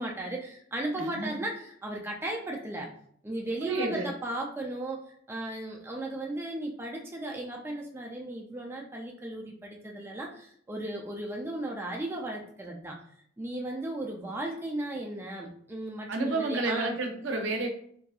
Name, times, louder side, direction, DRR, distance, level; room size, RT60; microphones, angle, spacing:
voice 1, 0.0-2.9 3.2-5.0 5.3-13.0 13.4-16.9, right 1 dB, 10° right, -1 dB, 0.3 m, -36 dB
voice 2, 1.0-1.4 3.6-4.1 16.1-17.7, right 2 dB, 85° right, 3 dB, 0.5 m, -30 dB
2.6 x 2.5 x 2.3 m, 0.63 s
head